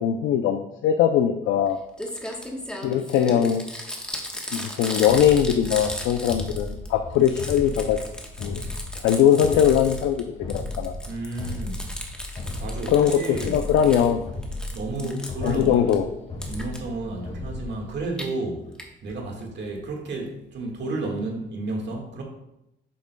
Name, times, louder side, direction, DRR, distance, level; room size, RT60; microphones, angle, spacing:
voice 1, 0.0-1.8 2.8-3.6 4.5-8.0 8.4-8.6 9.0-10.9 12.9-14.2 15.4-16.1, left 9 dB, 90° left, 6 dB, 0.5 m, -21 dB
Crumpling crinkling, 1.7-1.8 2.0-6.9 7.1-10.2 10.5-14.1 14.4-16.0 16.4-16.8 17.9-18.3 18.8-18.9 19.1-19.2 19.4-19.5, left 1 dB, 5° left, 1.1 m, -36 dB
sound 1, 5.1-18.2, left 2 dB, 35° left, 2.0 m, -35 dB
voice 2, 11.0-11.8 12.6-13.6 14.7-16.0 16.5-18.7 19.0-22.2, right 2 dB, 60° right, 1 dB, 1.7 m, -32 dB
8.4 x 6.2 x 2.2 m, 0.84 s
cardioid pair, 90°, 20 cm